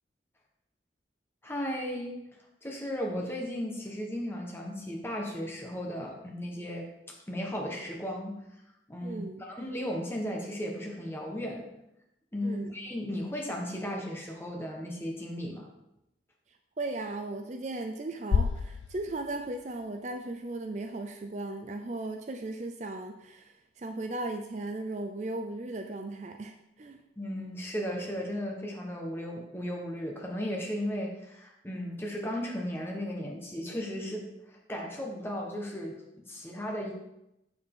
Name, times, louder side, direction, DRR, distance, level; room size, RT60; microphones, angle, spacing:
voice 1, 1.4-2.3 2.6-8.4 8.9-11.7 12.3-15.7 27.2-36.9, equal, 10° left, -1 dB, 1.2 m, -35 dB
voice 2, 9.0-9.4 12.4-12.7 16.8-27.0, right 2 dB, 40° right, 6 dB, 0.4 m, -37 dB
sound 1, 18.3-20.4, left 5 dB, 80° left, 0.4 m, -31 dB
7.6 x 7.0 x 3.7 m, 0.87 s
head